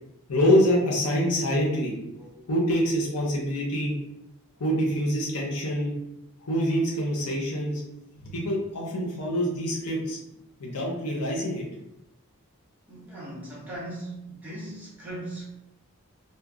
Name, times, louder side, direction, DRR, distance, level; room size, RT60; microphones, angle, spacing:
voice 1, 0.3-3.9 4.6-5.9 6.5-7.8 8.2-10.2 10.6-11.6, equal, 85° left, -3 dB, 0.7 m, -25 dB
voice 2, 12.9-15.5, right 1 dB, 10° right, -8 dB, 0.9 m, -38 dB
2.8 x 2.2 x 2.4 m, 0.86 s
head